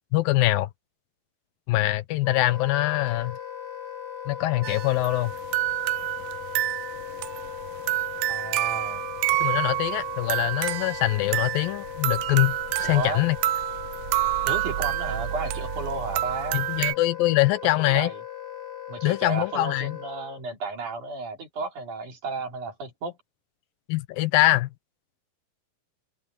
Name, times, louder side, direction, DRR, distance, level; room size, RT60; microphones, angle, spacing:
voice 1, 0.1-0.7 1.7-3.4 4.3-5.3 9.4-13.4 16.5-18.1 19.0-20.0 23.9-24.7, left 17 dB, 80° left, 2.5 m, -23 dB
Wind instrument woodwind instrument, 2.2-20.4, left 9 dB, 60° left, 7.7 m, -38 dB
sound 1, 4.6-17.0, right 16 dB, 85° right, 2.5 m, -28 dB
voice 2, 8.3-9.0 12.8-13.3 14.5-16.6 17.8-18.2 18.9-23.2, right 3 dB, 55° right, 5.7 m, -33 dB
omnidirectional pair, 4.2 m